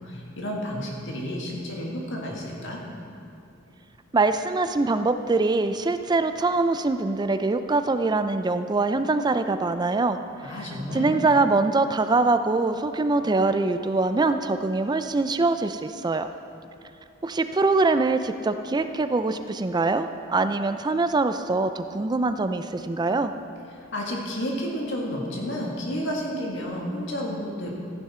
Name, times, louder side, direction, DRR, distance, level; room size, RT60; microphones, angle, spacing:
voice 1, 0.0-2.8 10.4-11.1 23.9-27.9, equal, 65° left, -2 dB, 2.0 m, -31 dB
voice 2, 4.1-10.2 10.9-16.3 17.2-23.3, right 3 dB, 20° right, 9 dB, 0.4 m, -23 dB
14.5 x 10.5 x 4.4 m, 2.8 s
head